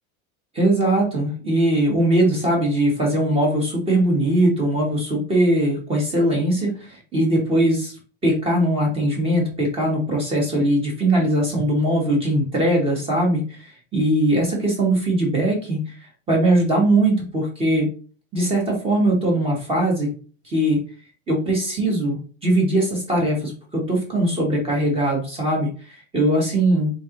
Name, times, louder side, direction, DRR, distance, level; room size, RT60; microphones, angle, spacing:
voice 1, 0.5-8.0 8.2-15.9 16.3-17.9 18.3-20.1 20.4-20.8 21.3-26.9, right 1 dB, 15° right, -2 dB, 1.5 m, -20 dB
3.9 x 3.8 x 3.0 m, 0.37 s
supercardioid pair, 160°, 33 cm